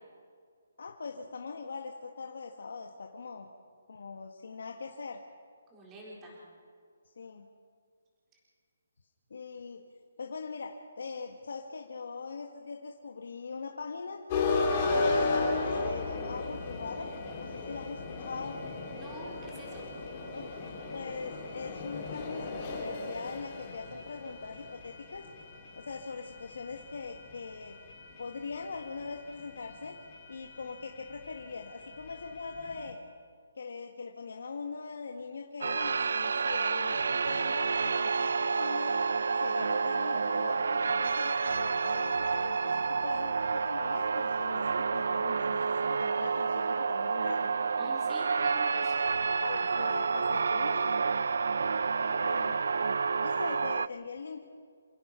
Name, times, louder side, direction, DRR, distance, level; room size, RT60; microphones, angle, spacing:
voice 1, 0.8-3.5 3.9-5.2 7.2-7.5 9.3-9.8 10.2-14.2 14.9-18.6 20.3-25.3 25.7-27.8 28.2-30.0 30.3-33.0 33.5-38.9 39.3-47.5 49.4-51.0 52.2-52.6 53.2-54.4, left 4 dB, 65° left, 2 dB, 1.7 m, -41 dB
voice 2, 5.7-6.4 18.9-19.9 47.8-49.0, right 1 dB, 10° right, -4 dB, 4.3 m, -46 dB
sound 1, 14.3-32.9, left 3 dB, 20° left, 3.1 m, -36 dB
sound 2, 35.6-53.9, right 5 dB, 65° right, 0.4 m, -29 dB
28.5 x 16.5 x 5.8 m, 2.1 s
hypercardioid pair, 175°, 0 cm